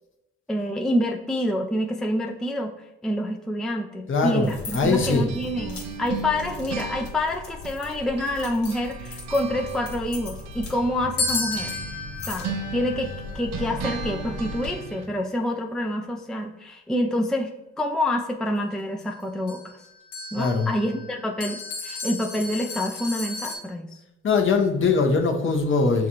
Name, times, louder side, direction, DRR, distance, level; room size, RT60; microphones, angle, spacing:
voice 1, 0.5-2.7 3.0-11.7 12.3-17.5 17.8-19.6 20.3-24.0, left 1 dB, ahead, 2 dB, 0.5 m, -27 dB
voice 2, 4.1-5.3 20.3-20.7 24.2-26.1, left 4 dB, 40° left, 4 dB, 0.8 m, -21 dB
sound 1, 4.4-14.7, left 4 dB, 70° left, 1.2 m, -39 dB
sound 2, 5.0-8.5 8.7-15.1, right 5 dB, 55° right, 0.5 m, -37 dB
sound 3, 11.2-15.0 19.0-19.1 19.5-23.6, left 3 dB, 85° left, 1.1 m, -34 dB
5.9 x 2.4 x 2.9 m, 0.93 s
supercardioid pair, 55°, 31 cm